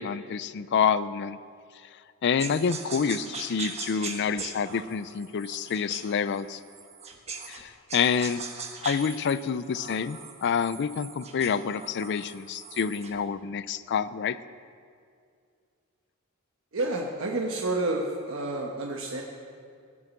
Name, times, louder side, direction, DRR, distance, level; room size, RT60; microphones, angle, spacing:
voice 1, 0.0-1.4 2.2-6.6 7.5-8.4 8.8-14.4, left 6 dB, 55° left, 16 dB, 0.4 m, -28 dB
sound 1, 2.4-7.6 7.9-13.2, right 5 dB, 30° right, 1.1 m, -40 dB
voice 2, 16.7-19.2, right 2 dB, 65° right, -1 dB, 1.1 m, -29 dB
17.0 x 6.3 x 7.3 m, 2.3 s
head